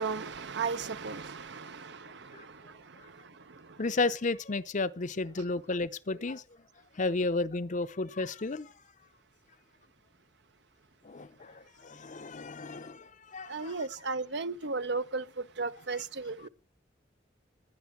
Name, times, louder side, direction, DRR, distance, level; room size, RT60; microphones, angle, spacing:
voice 1, 0.0-3.8 13.5-16.5, right 4 dB, 65° right, 0.8 m, -36 dB
voice 2, 3.8-6.4 6.9-8.7 11.0-13.8, left 3 dB, 45° left, 0.7 m, -33 dB
17.5 x 10.0 x 7.2 m
head